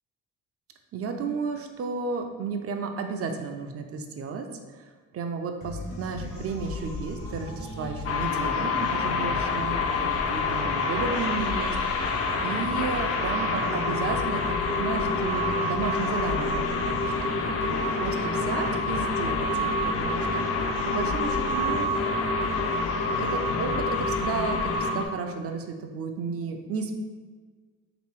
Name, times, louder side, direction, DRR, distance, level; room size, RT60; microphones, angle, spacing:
voice 1, 0.9-21.9 23.2-27.0, right 5 dB, 50° right, 5 dB, 0.6 m, -33 dB
sound 1, 5.6-24.8, left 1 dB, 90° left, 1.3 m, -37 dB
sound 2, 8.1-25.1, left 3 dB, 50° left, 0.5 m, -27 dB
3.2 x 3.1 x 4.5 m, 1.4 s
cardioid pair, 90°, 30 cm